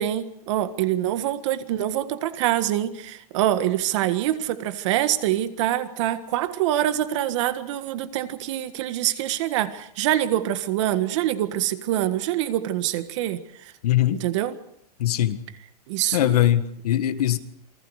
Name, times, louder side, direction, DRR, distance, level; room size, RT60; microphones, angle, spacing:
voice 1, 0.0-13.4 14.1-14.6 15.9-16.4, right 12 dB, 50° right, 1.7 m, -25 dB
voice 2, 13.8-14.2 15.0-15.4 16.1-17.4, left 13 dB, 70° left, 1.7 m, -21 dB
28.0 x 20.0 x 5.0 m
supercardioid pair, 165°, 20 cm